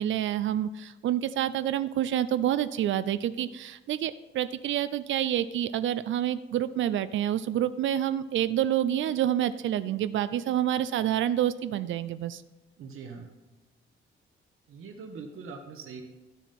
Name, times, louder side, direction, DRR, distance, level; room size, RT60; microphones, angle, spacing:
voice 1, 0.0-12.4, right 11 dB, 65° right, 14 dB, 0.4 m, -28 dB
voice 2, 12.8-13.3 14.7-16.0, right 5 dB, 90° right, 4 dB, 1.3 m, -42 dB
13.0 x 7.1 x 4.3 m, 1.1 s
cardioid pair, 170°, 21 cm